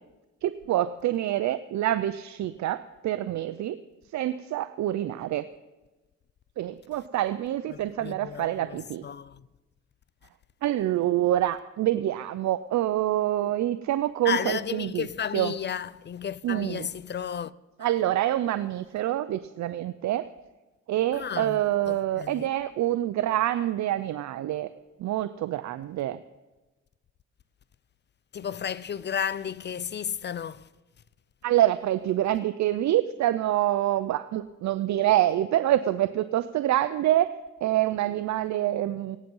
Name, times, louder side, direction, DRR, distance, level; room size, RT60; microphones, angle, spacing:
voice 1, 0.4-3.8 4.1-5.4 6.6-9.0 10.6-15.1 15.3-15.5 16.4-16.9 17.8-20.3 20.9-24.7 25.0-26.2 31.4-37.3 37.6-39.2, right 13 dB, 65° right, 0.6 m, -26 dB
voice 2, 7.7-9.4 14.2-17.5 17.8-17.9 21.1-21.6 21.9-22.5 28.3-30.7, left 8 dB, 35° left, 0.5 m, -33 dB
16.5 x 10.5 x 5.5 m
cardioid pair, 90°, 30 cm